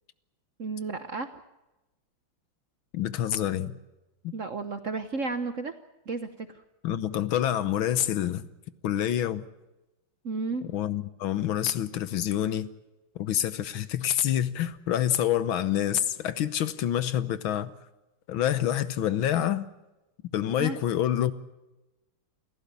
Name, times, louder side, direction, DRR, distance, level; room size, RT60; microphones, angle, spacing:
voice 1, 0.6-1.3 4.3-5.7 6.1-6.5 10.2-10.7 20.6-20.8, right 4 dB, 50° right, 1.0 m, -32 dB
voice 2, 2.9-3.8 4.2-4.3 6.8-8.5 8.8-9.4 10.7-12.7 13.1-17.7 18.3-19.7 20.3-21.3, left 11 dB, 70° left, 1.7 m, -27 dB
28.5 x 14.5 x 8.3 m
omnidirectional pair, 2.4 m